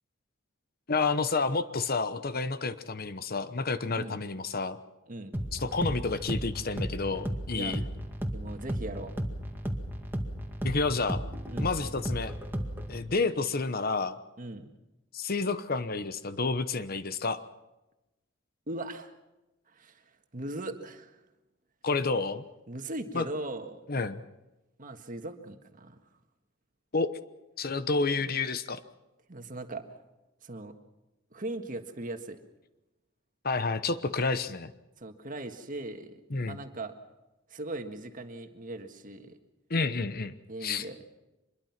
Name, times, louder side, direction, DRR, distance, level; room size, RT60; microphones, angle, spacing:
voice 1, 0.9-4.8 5.5-7.8 10.6-11.2 11.6-12.3 12.9-14.2 15.1-17.4 21.8-22.4 23.1-23.2 23.9-24.2 26.9-27.1 27.6-28.8 33.4-34.7 36.3-36.6 39.7-40.3 40.6-40.8, left 4 dB, 50° left, 12 dB, 1.0 m, -30 dB
sound 1, 5.3-13.0, equal, 10° right, 2.1 m, -34 dB
voice 2, 7.5-7.8 8.3-9.1 11.5-11.7 14.4-14.7 18.7-19.1 19.7-20.0 20.3-21.2 22.7-23.8 24.8-26.0 29.3-30.0 30.4-30.8 31.3-32.4 35.0-36.9 37.5-39.4 40.5-41.0, right 2 dB, 45° right, 6 dB, 1.7 m, -39 dB
25.0 x 22.0 x 6.0 m, 1.0 s
head